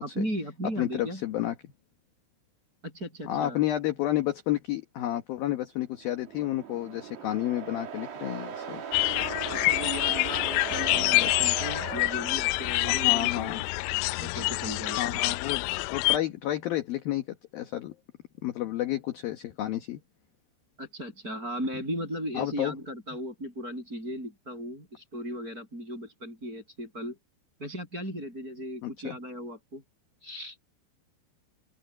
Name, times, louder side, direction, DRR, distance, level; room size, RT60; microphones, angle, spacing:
voice 1, 0.0-1.2 2.8-3.6 9.5-13.7 14.2-15.3 20.8-27.2 27.6-29.8 30.2-30.6, equal, 15° right, 8.3 m, -36 dB
voice 2, 0.8-1.5 3.2-8.8 10.9-11.4 12.8-13.7 14.2-14.4 15.0-15.6 15.9-17.3 17.5-18.0 18.4-20.0 22.3-22.7 28.8-29.2, left 13 dB, 70° left, 2.3 m, -31 dB
sound 1, 6.0-13.0, right 7 dB, 50° right, 4.0 m, -39 dB
sound 2, 8.9-16.2, left 23 dB, 90° left, 3.3 m, -27 dB
omnidirectional pair, 5.9 m